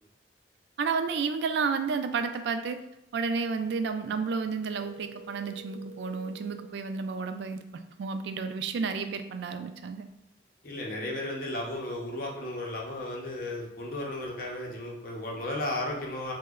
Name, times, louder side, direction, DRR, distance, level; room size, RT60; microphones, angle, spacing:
voice 1, 0.8-2.8 3.1-7.6 8.0-10.0, right 5 dB, 70° right, 8 dB, 0.3 m, -31 dB
sound 1, 4.7-6.7, right 1 dB, 15° right, 0.7 m, -48 dB
voice 2, 10.6-16.3, left 1 dB, 50° left, -2 dB, 0.7 m, -34 dB
2.9 x 2.1 x 3.5 m, 0.90 s
head